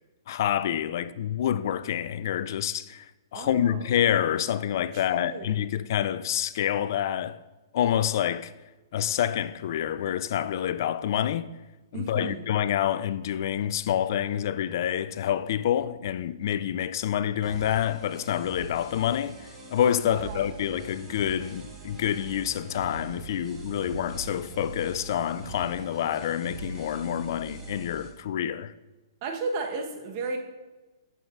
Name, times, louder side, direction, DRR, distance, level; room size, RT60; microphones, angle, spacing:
voice 1, 0.3-7.4 7.7-8.5 8.9-11.5 11.9-28.7, left 10 dB, 55° left, 0.3 m, -27 dB
voice 2, 3.3-4.0 4.9-5.6 11.9-12.6 20.0-20.6 29.2-30.4, right 4 dB, 40° right, 1.1 m, -35 dB
sound 1, 17.4-28.1, right 3 dB, 20° right, 1.7 m, -42 dB
9.0 x 6.9 x 2.5 m
hypercardioid pair, 135°, 2 cm